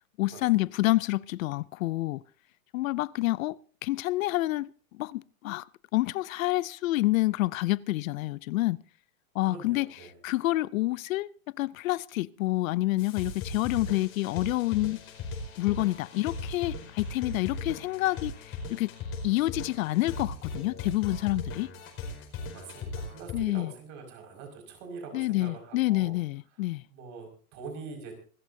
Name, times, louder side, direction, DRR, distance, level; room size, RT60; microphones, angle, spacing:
voice 1, 0.2-2.2 2.7-5.7 5.9-8.8 9.3-11.3 11.6-15.0 15.6-18.9 19.2-21.7 23.3-23.7 25.1-26.8, left 18 dB, 70° left, 0.6 m, -28 dB
voice 2, 9.5-10.2 22.5-26.1 26.9-28.1, right 4 dB, 40° right, 5.4 m, -44 dB
sound 1, 13.0-23.4, left 3 dB, 30° left, 5.0 m, -38 dB
25.5 x 14.0 x 2.7 m
supercardioid pair, 145°, 43 cm